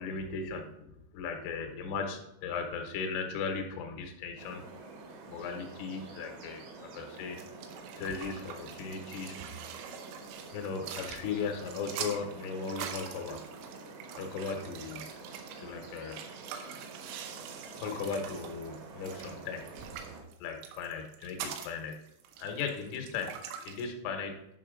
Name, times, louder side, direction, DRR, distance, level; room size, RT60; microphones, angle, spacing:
voice 1, 0.0-4.6 5.3-7.4 8.0-9.6 10.5-13.4 14.2-15.1 15.6-16.2 17.8-19.6 20.4-22.1 22.4-24.5, left 5 dB, 80° left, 3 dB, 3.6 m, -37 dB
sound 1, 4.4-20.2, right 3 dB, 70° right, 3.4 m, -48 dB
sound 2, 7.1-23.9, right 8 dB, 85° right, 3.5 m, -45 dB
10.5 x 5.6 x 3.7 m, 0.79 s
omnidirectional pair, 5.8 m